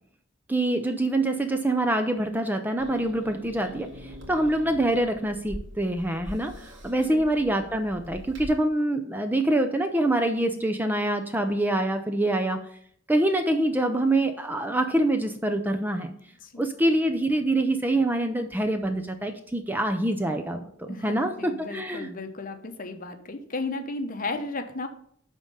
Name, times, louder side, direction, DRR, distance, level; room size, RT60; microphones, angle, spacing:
voice 1, 0.5-12.6 13.1-16.1 16.6-22.1, right 1 dB, 10° right, 6 dB, 0.5 m, -25 dB
Growling / Hiss, 2.8-8.5, equal, 75° right, 1.8 m, -43 dB
voice 2, 20.9-24.9, left 3 dB, 45° left, 6 dB, 0.9 m, -34 dB
10.5 x 3.7 x 5.5 m, 0.64 s
head